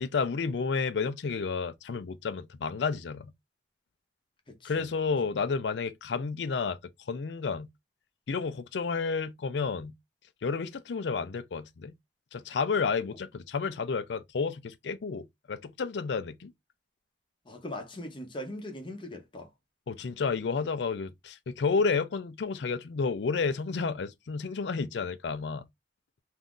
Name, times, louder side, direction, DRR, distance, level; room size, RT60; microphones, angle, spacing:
voice 1, 0.0-3.3 4.6-6.8 7.1-7.7 8.3-10.0 10.4-11.9 12.3-16.5 19.9-25.6, left 5 dB, 75° left, 0.4 m, -31 dB
voice 2, 4.5-4.9 17.5-19.5, left 1 dB, 30° left, 0.8 m, -40 dB
2.7 x 2.4 x 3.6 m
head